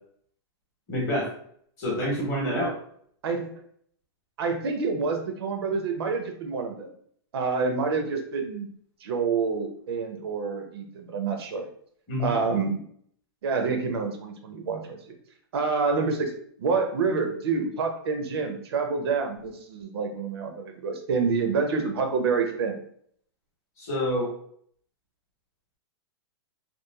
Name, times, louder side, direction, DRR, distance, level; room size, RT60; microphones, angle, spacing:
voice 1, 0.9-1.3 1.8-2.8 12.1-12.4 23.8-24.3, equal, 20° left, -5 dB, 0.8 m, -27 dB
voice 2, 3.2-3.6 4.4-6.9 7.3-8.7 9.0-11.7 12.2-12.8 13.4-15.0 15.5-16.3 16.6-22.8, right 4 dB, 70° right, 5 dB, 0.5 m, -27 dB
2.9 x 2.2 x 2.2 m, 0.62 s
supercardioid pair, 180°, 14 cm